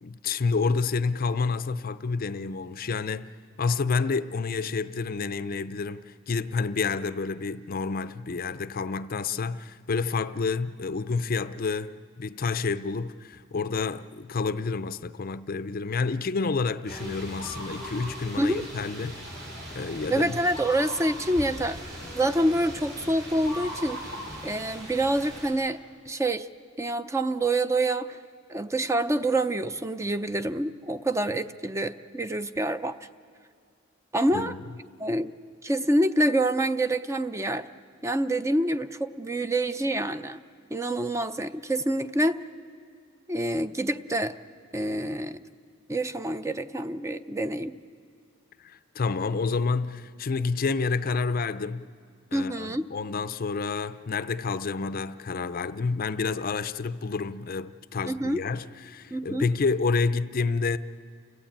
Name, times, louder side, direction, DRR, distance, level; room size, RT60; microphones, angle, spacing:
voice 1, 0.0-3.3 3.6-19.4 19.7-20.4 34.3-34.6 48.6-51.9 52.3-60.8, left 4 dB, 45° left, 0.5 m, -29 dB
sound 1, 16.9-25.5, equal, 60° right, 7.6 m, -39 dB
voice 2, 20.1-24.1 24.4-25.8 26.1-26.5 26.8-28.2 28.5-32.9 34.1-34.5 35.0-35.3 35.6-37.7 38.0-40.4 40.7-42.4 43.3-44.4 44.7-45.4 45.9-47.8 52.3-52.9 58.1-58.4 59.1-59.5, right 1 dB, 15° right, 0.5 m, -27 dB
29.5 x 15.5 x 8.8 m
head